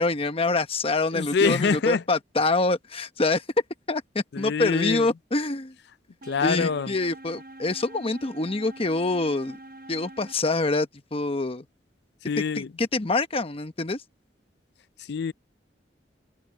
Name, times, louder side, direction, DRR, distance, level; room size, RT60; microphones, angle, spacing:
voice 1, 0.0-3.4 3.9-5.7 6.4-9.6 9.9-11.6 12.4-14.0, left 2 dB, 35° left, 1.1 m, -26 dB
voice 2, 1.1-2.0 4.3-5.1 6.3-6.9 12.3-12.7 15.1-15.3, left 5 dB, 65° left, 0.4 m, -25 dB
sound 1, 6.2-10.3, right 1 dB, 50° right, 1.0 m, -45 dB
head